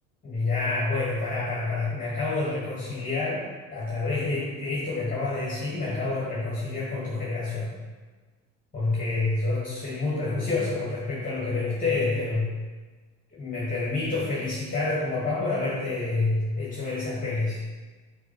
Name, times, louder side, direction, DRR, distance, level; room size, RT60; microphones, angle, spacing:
voice 1, 0.2-3.4 3.7-7.7 8.7-12.5 13.4-17.6, left 3 dB, 20° left, -7 dB, 1.9 m, -28 dB
5.2 x 4.6 x 4.6 m, 1.4 s
hypercardioid pair, 75°, 40 cm